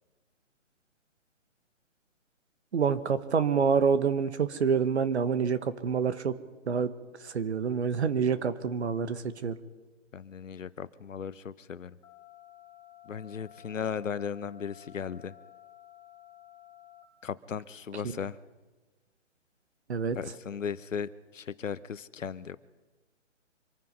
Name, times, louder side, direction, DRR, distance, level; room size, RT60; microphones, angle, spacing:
voice 1, 2.7-6.4 6.7-6.9 7.2-9.6 19.9-20.2, right 6 dB, 60° right, 12 dB, 1.4 m, -27 dB
voice 2, 10.1-12.0 13.0-15.3 17.2-18.4 20.1-22.6, left 7 dB, 90° left, 17 dB, 0.9 m, -36 dB
sound 1, 12.0-17.0, left 12 dB, 10° left, 0.9 m, -53 dB
26.0 x 9.7 x 5.5 m, 1.2 s
hypercardioid pair, 155°, 37 cm